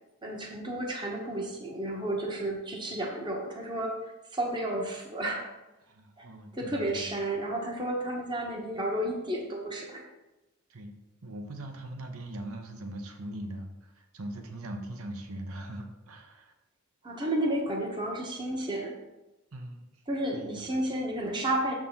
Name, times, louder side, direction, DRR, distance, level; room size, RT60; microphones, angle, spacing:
voice 1, 0.2-5.5 6.2-6.3 6.5-10.0 17.0-18.9 20.1-21.7, right 1 dB, 20° right, -1 dB, 0.9 m, -32 dB
voice 2, 5.9-7.0 10.7-10.9 11.2-16.5 19.5-19.8 20.3-20.6, right 1 dB, 80° right, 4 dB, 0.9 m, -41 dB
7.3 x 3.7 x 5.6 m, 0.99 s
head